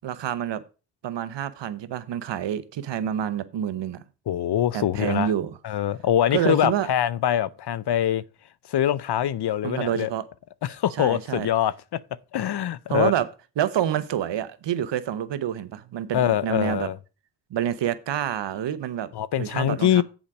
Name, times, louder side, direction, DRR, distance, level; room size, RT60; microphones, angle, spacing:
voice 1, 0.0-0.6 1.0-4.0 4.7-5.6 6.3-6.9 9.6-10.2 11.0-11.5 12.9-13.3 13.6-16.9 17.5-19.1 19.4-20.0, right 10 dB, 85° right, 0.8 m, -27 dB
voice 2, 4.3-5.3 5.6-8.2 8.7-10.1 10.6-12.0 12.3-13.1 16.1-17.0 19.1-20.0, left 11 dB, 70° left, 0.6 m, -24 dB
7.3 x 5.0 x 6.0 m
cardioid pair, 40°, 42 cm